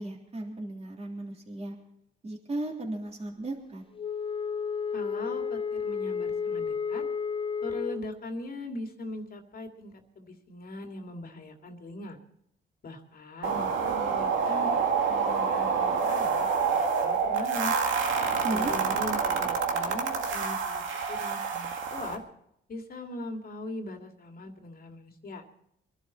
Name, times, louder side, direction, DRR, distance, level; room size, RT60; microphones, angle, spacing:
voice 1, 0.0-1.7 2.2-3.8 18.4-18.7, right 1 dB, 30° right, -1 dB, 3.4 m, -35 dB
Wind instrument woodwind instrument, 3.9-8.1, left 6 dB, 25° left, 0.6 m, -32 dB
voice 2, 4.9-7.1 7.6-12.2 12.8-16.5 16.7-17.7 18.5-20.8 21.1-22.2 22.7-25.4, left 1 dB, 50° left, 4 dB, 2.3 m, -40 dB
sound 1, 13.4-22.2, right 5 dB, 75° right, 2.0 m, -27 dB
23.5 x 11.5 x 4.2 m, 0.76 s
cardioid pair, 90°, 20 cm